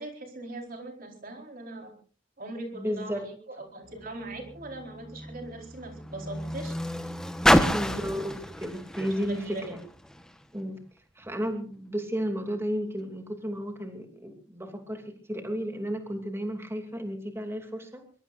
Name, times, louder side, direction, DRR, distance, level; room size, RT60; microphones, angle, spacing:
voice 1, 0.0-1.9 2.4-7.1 7.7-8.2 9.2-9.6, right 2 dB, 50° right, 2 dB, 4.4 m, -41 dB
voice 2, 2.7-3.3 7.7-9.8 10.5-10.8 11.2-18.0, equal, 15° right, 4 dB, 2.7 m, -33 dB
Car, 3.8-10.4 11.2-11.3, equal, 5° left, 1.2 m, -29 dB
23.0 x 22.5 x 2.6 m, 0.39 s
head